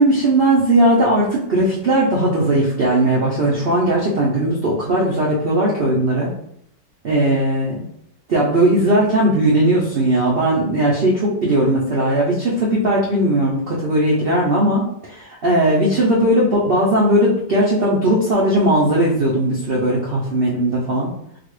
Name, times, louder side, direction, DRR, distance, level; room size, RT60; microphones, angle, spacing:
voice 1, 0.0-6.3 7.0-7.8 8.3-21.1, right 1 dB, 60° right, -5 dB, 0.6 m, -18 dB
3.9 x 2.4 x 3.1 m, 0.72 s
omnidirectional pair, 1.8 m